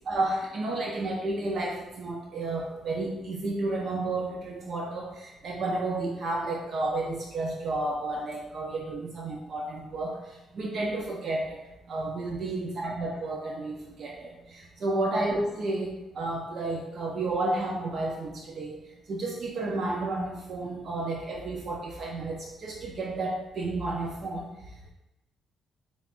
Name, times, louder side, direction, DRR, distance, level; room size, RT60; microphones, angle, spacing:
voice 1, 0.1-11.6 11.9-18.8 19.1-24.5, right 2 dB, 55° right, -1 dB, 0.5 m, -31 dB
5.2 x 2.3 x 2.4 m, 0.97 s
cardioid pair, 90°, 0 cm